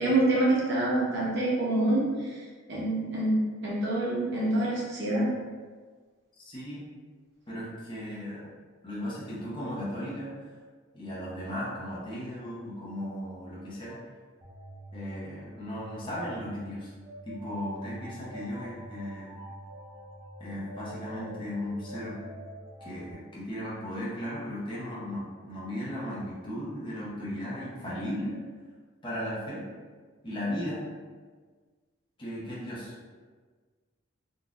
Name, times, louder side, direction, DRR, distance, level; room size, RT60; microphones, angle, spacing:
voice 1, 0.0-2.4 2.7-5.3, right 1 dB, 55° right, -6 dB, 0.8 m, -26 dB
voice 2, 6.4-6.9 7.5-8.5 8.8-10.3 10.9-14.0 14.9-16.9 17.3-19.4 20.4-22.2 22.8-28.4 29.0-29.7 30.2-30.8 32.2-32.9, equal, 25° left, -8 dB, 0.7 m, -36 dB
sound 1, 14.4-23.1, equal, 15° right, 0.3 m, -45 dB
3.8 x 2.4 x 2.4 m, 1.5 s
head